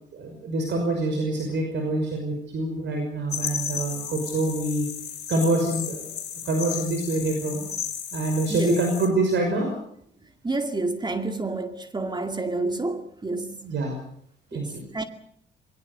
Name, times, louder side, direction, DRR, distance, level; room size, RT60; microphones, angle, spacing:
voice 1, 0.1-4.9 5.3-6.1 6.5-7.6 8.1-9.7 13.6-14.0 14.5-14.8, right 2 dB, 65° right, 5.6 m, -26 dB
sound 1, 3.3-9.1, left 8 dB, 55° left, 4.5 m, -34 dB
voice 2, 8.5-8.8 10.4-13.7 14.5-15.0, right 2 dB, 20° right, 2.2 m, -29 dB
22.0 x 18.0 x 8.1 m
cardioid pair, 90°, 20 cm